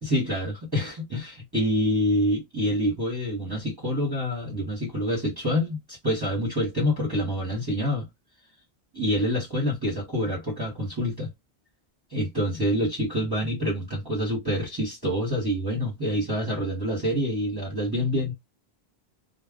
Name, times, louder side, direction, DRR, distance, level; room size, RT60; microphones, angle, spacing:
voice 1, 0.0-8.1 8.9-11.3 12.1-18.3, equal, 25° right, 1.1 m, -27 dB
2.3 x 2.2 x 3.5 m
omnidirectional pair, 1.0 m